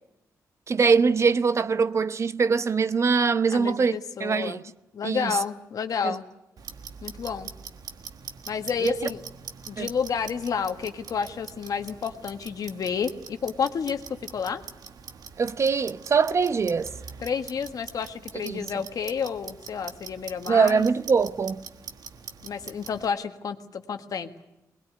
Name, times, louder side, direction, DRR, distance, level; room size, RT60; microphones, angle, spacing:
voice 1, 0.7-4.6 5.0-5.4 6.0-6.2 8.8-9.1 9.8-9.9 15.4-16.9 18.4-18.6 20.5-21.6, right 5 dB, 45° right, 0.8 m, -23 dB
voice 2, 3.5-4.6 4.9-6.2 7.0-7.5 8.5-9.2 9.7-14.0 14.3-14.6 17.2-20.9 22.4-24.3, left 6 dB, 70° left, 1.6 m, -30 dB
Clock, 6.6-23.1, right 6 dB, 70° right, 1.4 m, -43 dB
21.5 x 20.5 x 9.5 m
cardioid pair, 110°, 7 cm